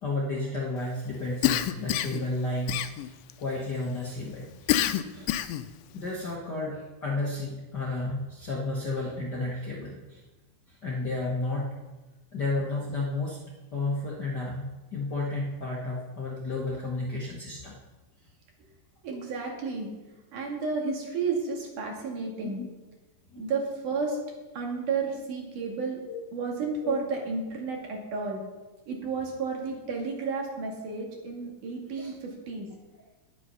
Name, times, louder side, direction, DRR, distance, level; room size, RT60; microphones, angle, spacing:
voice 1, 0.0-4.7 5.1-5.4 5.9-10.2 10.8-11.7 12.3-13.4 13.7-14.6 14.9-17.7 22.4-22.7 23.3-23.4 26.1-26.2 26.8-27.0 31.9-32.1, left 2 dB, 45° left, -4 dB, 1.5 m, -32 dB
Cough, 1.4-2.2 2.7-3.3 4.7-5.7, left 12 dB, 80° left, 2.2 m, -26 dB
voice 2, 19.0-19.9 20.3-22.6 23.4-24.2 24.6-26.0 26.3-28.4 28.9-32.7, right 4 dB, 65° right, 0 dB, 3.5 m, -32 dB
11.0 x 10.0 x 5.5 m, 1.1 s
omnidirectional pair, 4.0 m